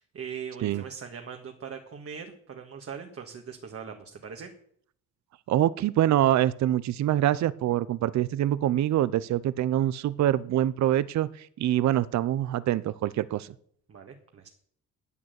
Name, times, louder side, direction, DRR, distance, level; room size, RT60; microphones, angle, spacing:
voice 1, 0.0-4.5 13.9-14.5, right 7 dB, 50° right, 3 dB, 1.8 m, -41 dB
voice 2, 5.5-13.5, right 12 dB, 65° right, 18 dB, 0.6 m, -25 dB
11.0 x 8.7 x 8.1 m, 0.63 s
cardioid pair, 90°, 30 cm